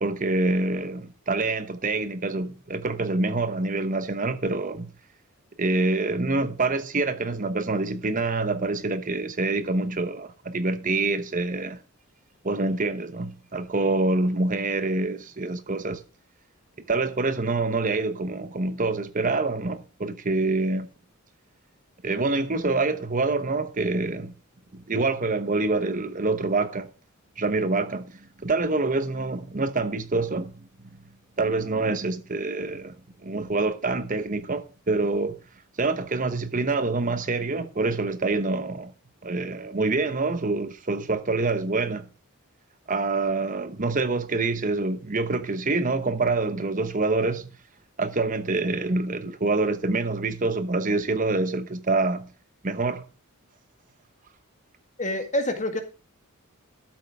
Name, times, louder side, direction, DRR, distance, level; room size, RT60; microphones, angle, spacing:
voice 1, 0.0-4.9 5.6-11.8 12.4-16.0 16.9-20.9 22.0-24.3 24.7-26.9 27.4-30.6 31.4-32.9 33.2-35.3 35.8-38.9 39.2-42.1 42.9-47.5 48.0-52.3 52.6-53.0, right 3 dB, 35° right, 0.9 m, -26 dB
voice 2, 55.0-55.8, left 1 dB, 35° left, 1.9 m, -26 dB
13.0 x 7.5 x 3.5 m
head